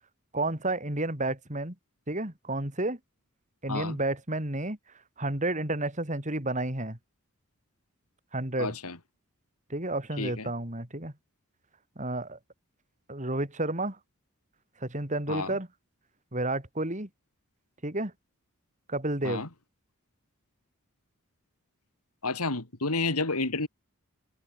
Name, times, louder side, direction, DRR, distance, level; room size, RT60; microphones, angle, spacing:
voice 1, 0.3-1.8 2.1-3.0 3.6-4.8 5.2-7.0 8.3-8.7 9.7-11.1 12.0-12.4 13.1-14.0 14.8-15.7 16.3-17.1 17.8-18.1 18.9-19.4, right 2 dB, 35° right, 3.5 m, -31 dB
voice 2, 8.6-9.0 10.2-10.5 15.3-15.6 19.2-19.5 22.2-23.7, left 3 dB, 85° left, 3.1 m, -30 dB
head